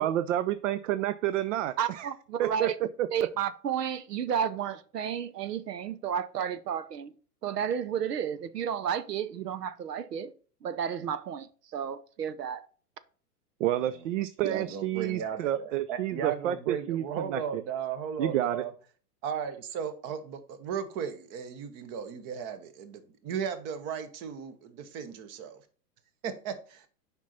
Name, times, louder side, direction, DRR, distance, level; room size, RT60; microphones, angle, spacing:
voice 1, 0.0-2.1 2.4-2.7 3.0-3.3 13.6-17.6 18.2-18.6, right 12 dB, 55° right, 0.5 m, -29 dB
voice 2, 1.8-2.8 3.1-7.1 7.4-10.3 10.6-12.7, right 8 dB, 80° right, 0.8 m, -32 dB
voice 3, 14.4-18.7 19.2-25.6 26.2-26.9, right 7 dB, 30° right, 1.1 m, -36 dB
7.2 x 5.4 x 4.2 m
hypercardioid pair, 120°, 47 cm